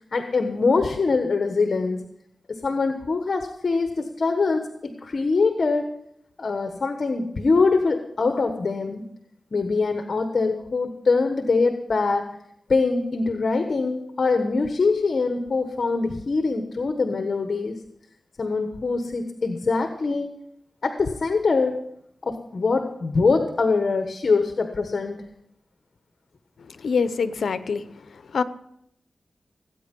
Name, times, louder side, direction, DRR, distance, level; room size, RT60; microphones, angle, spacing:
voice 1, 0.1-2.0 2.5-5.9 6.4-9.0 9.5-12.3 12.7-17.8 18.4-20.3 20.8-21.8 22.2-25.2, left 4 dB, 60° left, 6 dB, 1.3 m, -23 dB
voice 2, 26.8-27.9 28.3-28.4, left 5 dB, 85° left, 13 dB, 0.8 m, -24 dB
19.5 x 9.1 x 5.4 m, 0.75 s
cardioid pair, 70°, 0 cm